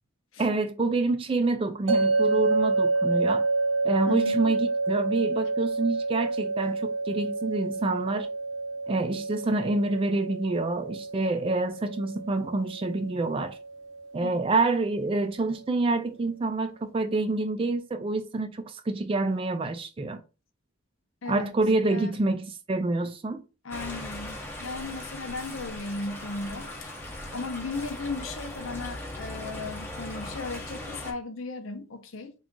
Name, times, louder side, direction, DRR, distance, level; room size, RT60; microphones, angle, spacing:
voice 1, 0.4-3.5 3.8-8.3 8.9-13.6 14.1-20.2 21.3-23.4, right 2 dB, 25° right, 0.3 m, -27 dB
sound 1, 1.9-15.0, right 3 dB, 80° right, 0.8 m, -29 dB
voice 2, 4.1-4.5 14.2-14.3 21.2-22.1 23.6-26.9 27.3-32.3, left 3 dB, 85° left, 0.7 m, -36 dB
sound 2, 23.7-31.1, left 1 dB, 10° left, 0.7 m, -39 dB
3.6 x 2.4 x 3.7 m
head